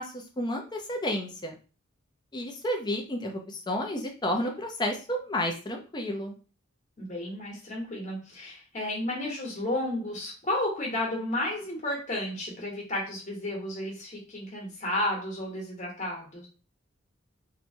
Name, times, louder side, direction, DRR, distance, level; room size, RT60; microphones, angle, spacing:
voice 1, 0.0-1.5 2.3-6.3, equal, 20° left, 2 dB, 0.5 m, -31 dB
voice 2, 7.0-16.5, left 1 dB, 35° left, -2 dB, 1.1 m, -32 dB
2.9 x 2.2 x 2.6 m, 0.34 s
head